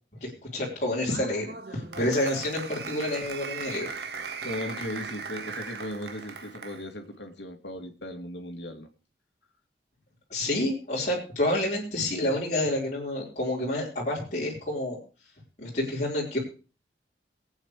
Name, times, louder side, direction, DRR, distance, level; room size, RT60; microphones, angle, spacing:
voice 1, 0.2-3.9 10.3-15.0 15.6-16.4, left 1 dB, 45° left, -5 dB, 4.4 m, -29 dB
Applause, 1.1-6.9, right 5 dB, 65° right, 1.6 m, -38 dB
voice 2, 4.4-8.9, left 1 dB, 90° left, 5 dB, 2.7 m, -37 dB
22.5 x 9.0 x 3.3 m, 0.35 s
head